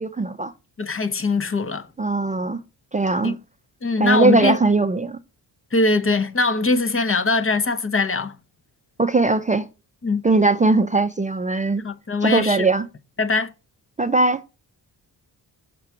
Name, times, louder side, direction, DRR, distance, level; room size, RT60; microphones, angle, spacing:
voice 1, 0.0-0.5 2.0-2.6 2.9-3.4 4.0-5.2 9.0-9.7 10.2-11.8 12.2-12.9 14.0-14.4, right 3 dB, 20° right, 0.5 m, -19 dB
voice 2, 0.8-1.9 3.2-3.3 3.8-4.6 5.7-8.4 10.0-10.2 11.8-12.7 13.2-13.5, left 3 dB, 30° left, 0.8 m, -21 dB
6.8 x 3.3 x 5.8 m
cardioid pair, 80°, 43 cm